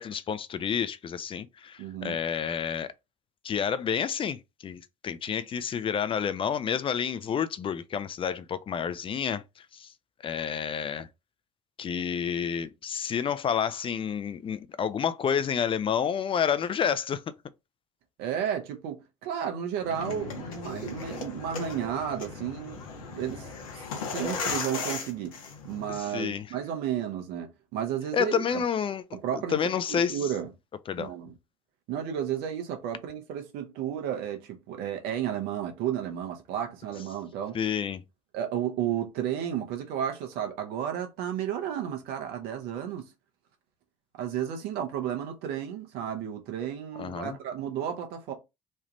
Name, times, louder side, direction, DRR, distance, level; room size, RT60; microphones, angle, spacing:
voice 1, 0.0-2.9 3.4-9.9 10.2-11.1 11.8-17.2 26.0-26.5 28.1-29.2 29.5-30.2 30.9-31.1 37.5-38.0 47.0-47.4, left 7 dB, 30° left, 0.4 m, -29 dB
voice 2, 1.8-2.2 18.2-23.5 23.7-25.4 25.6-28.6 29.1-29.6 29.9-30.5 31.0-31.3 31.9-37.6 38.3-43.1 44.2-48.3, right 9 dB, 65° right, 1.0 m, -32 dB
sound 1, 19.8-26.0, left 5 dB, 80° left, 0.8 m, -37 dB
3.2 x 2.4 x 3.0 m
hypercardioid pair, 60°, 17 cm